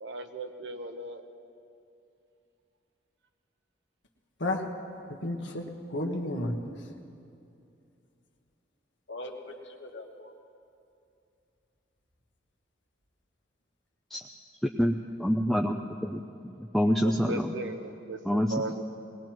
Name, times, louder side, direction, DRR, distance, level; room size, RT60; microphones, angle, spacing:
voice 1, 0.0-1.3 17.0-18.8, right 2 dB, 75° right, 6 dB, 1.0 m, -37 dB
voice 2, 5.1-6.6 9.1-10.3, left 1 dB, 75° left, 3 dB, 1.4 m, -34 dB
voice 3, 14.8-17.5 18.2-18.5, equal, ahead, 2 dB, 0.4 m, -27 dB
21.0 x 20.0 x 3.1 m, 2.6 s
head